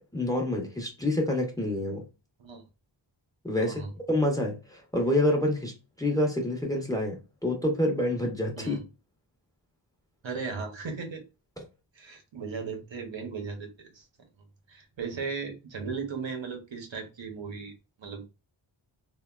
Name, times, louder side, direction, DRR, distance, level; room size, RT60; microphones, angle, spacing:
voice 1, 0.1-2.0 3.4-3.8 4.1-8.8 11.6-11.7, left 1 dB, 5° left, 0.8 m, -27 dB
voice 2, 10.2-11.2 11.9-14.1 14.7-17.7 18.0-18.3, right 5 dB, 70° right, 0.8 m, -36 dB
3.3 x 2.2 x 2.2 m
wide cardioid pair, 70°, 48 cm